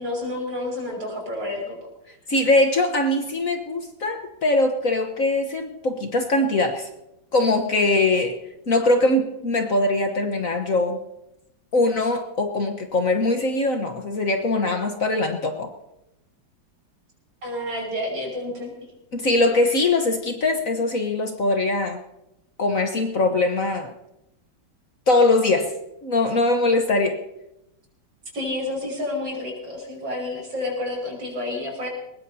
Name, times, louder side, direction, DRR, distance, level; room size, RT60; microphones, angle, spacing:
voice 1, 0.0-1.8 17.4-18.7 28.3-31.9, left 1 dB, 70° right, 0 dB, 6.5 m, -29 dB
voice 2, 2.3-6.9 7.3-8.4 8.7-11.0 11.7-15.7 19.1-22.0 22.6-23.9 25.1-25.7 26.0-27.2, left 2 dB, 50° left, 5 dB, 1.4 m, -21 dB
21.5 x 19.5 x 2.8 m, 0.89 s
omnidirectional pair, 2.1 m